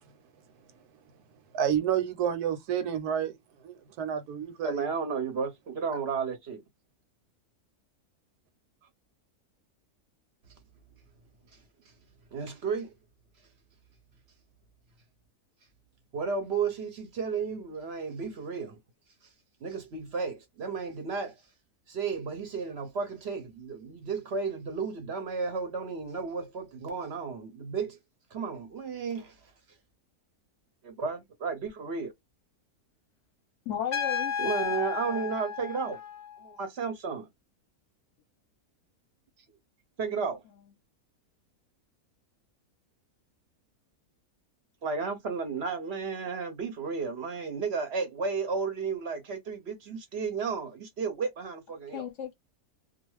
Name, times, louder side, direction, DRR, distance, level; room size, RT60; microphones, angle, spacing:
voice 1, 1.5-3.3 3.6-4.9, right 9 dB, 90° right, 1.2 m, -29 dB
voice 2, 4.6-6.6 12.3-12.9 16.1-18.8 19.6-21.3 21.9-28.0 28.3-29.3 30.8-32.1 34.4-36.0 36.4-37.3 40.0-40.4 44.8-52.1, right 5 dB, 55° right, 0.8 m, -33 dB
voice 3, 33.7-35.3 51.9-52.3, left 9 dB, 60° left, 0.8 m, -36 dB
Trumpet, 33.9-36.5, left 7 dB, 80° left, 0.3 m, -33 dB
2.4 x 2.3 x 3.0 m
omnidirectional pair, 1.6 m